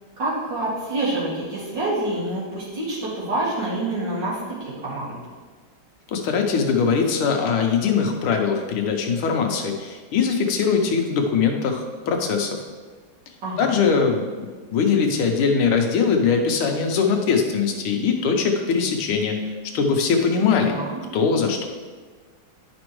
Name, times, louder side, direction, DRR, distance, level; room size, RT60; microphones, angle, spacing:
voice 1, 0.2-5.1 13.4-13.7 20.4-21.0, right 2 dB, 60° right, -8 dB, 3.0 m, -27 dB
voice 2, 6.1-12.6 13.6-14.2 14.7-19.4 19.7-20.8 21.1-21.7, left 5 dB, 80° left, 4 dB, 1.7 m, -21 dB
10.5 x 5.2 x 3.1 m, 1.4 s
omnidirectional pair, 2.3 m